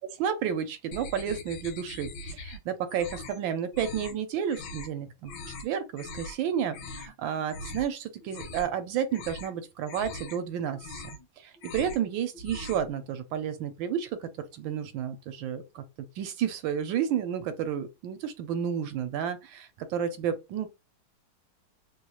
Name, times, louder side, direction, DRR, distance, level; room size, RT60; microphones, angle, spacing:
voice 1, 0.2-5.3 5.6-10.9 11.4-15.8 16.2-20.7, right 8 dB, 80° right, 1.3 m, -31 dB
sound 1, 0.9-2.6 2.9-3.4 3.7-4.2 4.5-4.9 5.3-5.7 6.0-6.4 6.7-7.1 7.5-7.9 8.2-8.8 9.1-9.5 9.9-10.4 10.7-11.3 11.6-12.1 12.3-12.9, left 2 dB, 70° left, 1.3 m, -41 dB
3.3 x 2.3 x 3.0 m
omnidirectional pair, 2.1 m